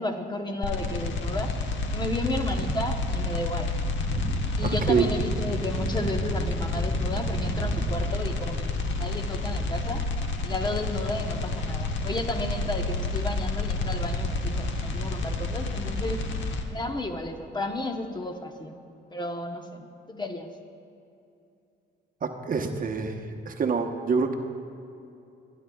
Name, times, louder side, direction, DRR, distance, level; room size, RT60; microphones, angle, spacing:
voice 1, 0.0-1.6 1.9-3.7 4.5-10.0 10.4-16.2 16.7-18.8 19.1-20.5, left 2 dB, 20° left, 5 dB, 0.9 m, -33 dB
sound 1, 0.6-16.6, left 2 dB, 70° left, 1.0 m, -30 dB
sound 2, 2.4-8.4, right 2 dB, 10° right, 2.7 m, -33 dB
voice 2, 4.6-5.0 22.2-23.2 23.5-24.3, right 5 dB, 45° right, 4 dB, 0.9 m, -26 dB
23.5 x 10.0 x 2.3 m, 2.7 s
cardioid pair, 90°, 20 cm